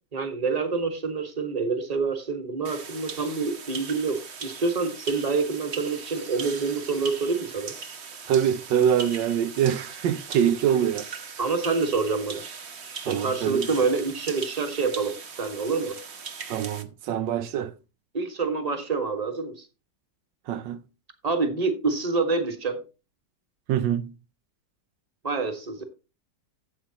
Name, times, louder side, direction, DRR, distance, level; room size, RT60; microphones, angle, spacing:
voice 1, 0.1-7.7 11.4-12.4 13.1-16.0 18.1-19.7 21.2-22.8 25.2-25.8, right 4 dB, 20° right, 1.7 m, -27 dB
sound 1, 2.6-16.8, right 5 dB, 45° right, 1.2 m, -39 dB
voice 2, 8.3-11.0 13.0-13.7 16.5-17.7 20.5-20.8 23.7-24.1, right 9 dB, 85° right, 1.4 m, -24 dB
13.0 x 8.3 x 2.9 m
omnidirectional pair, 1.9 m